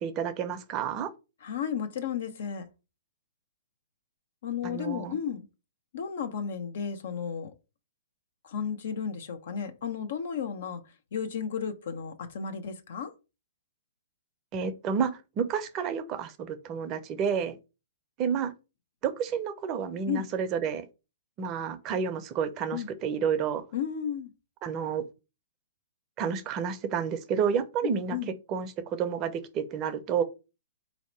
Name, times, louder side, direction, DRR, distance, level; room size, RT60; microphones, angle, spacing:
voice 1, 0.0-1.1 4.6-5.2 14.5-17.6 18.2-18.5 19.0-20.8 21.4-23.6 24.6-25.0 26.2-28.2 28.5-30.2, right 7 dB, 30° right, 0.6 m, -30 dB
voice 2, 1.4-2.7 4.4-5.5 5.9-7.5 8.4-10.8 11.1-13.1 20.1-20.3 22.7-22.9 23.7-24.3 27.8-28.3, left 7 dB, 65° left, 0.8 m, -33 dB
4.1 x 2.8 x 4.6 m
hypercardioid pair, 125°, 0 cm